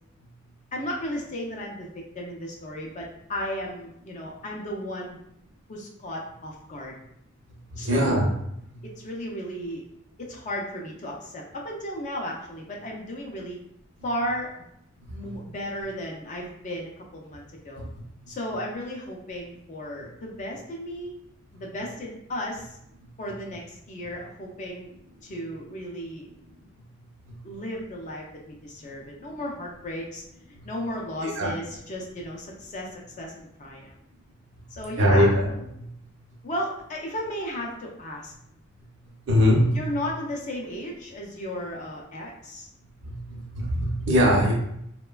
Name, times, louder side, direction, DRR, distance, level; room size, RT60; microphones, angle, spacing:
voice 1, 0.7-5.2 5.7-7.0 7.8-8.2 8.8-9.8 10.2-13.6 14.0-14.5 15.1-17.8 18.3-21.1 21.5-22.8 23.2-24.9 25.2-26.3 27.4-30.2 30.6-34.0 34.7-35.6 36.4-38.3 39.7-42.7, equal, 35° left, -1 dB, 0.4 m, -34 dB
voice 2, 7.7-8.3 8.7-8.8 15.2-15.3 17.8-17.9 27.3-27.4 30.6-30.7 31.4-31.5 35.0-35.5 35.8-35.9 39.3-39.9 43.0-44.5, equal, 65° right, -1 dB, 0.7 m, -22 dB
3.0 x 2.1 x 2.2 m, 0.76 s
head